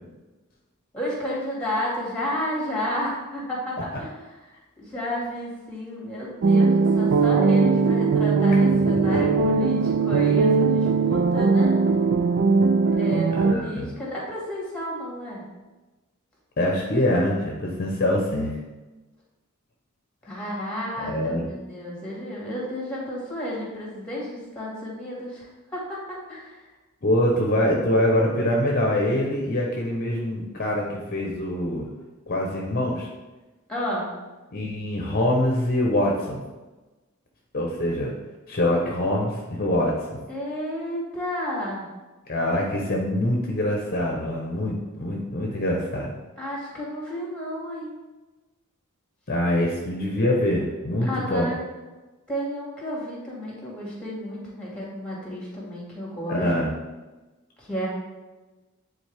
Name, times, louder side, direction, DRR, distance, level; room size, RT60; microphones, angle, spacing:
voice 1, 0.9-4.4 4.8-11.7 13.0-15.4 20.2-26.6 33.7-34.1 40.3-41.9 46.4-47.9 51.0-51.6 52.3-56.5 57.6-57.9, equal, 5° left, -4 dB, 2.3 m, -32 dB
sound 1, 6.4-13.5, right 4 dB, 55° right, 0.4 m, -20 dB
voice 2, 8.9-9.4 13.3-13.9 16.6-18.6 21.0-21.4 27.0-31.9 32.3-33.1 34.5-36.4 37.5-38.2 38.5-40.2 42.3-46.1 49.3-51.5 56.3-56.7, left 1 dB, 45° left, -1 dB, 0.9 m, -24 dB
9.2 x 4.0 x 3.5 m, 1.2 s
head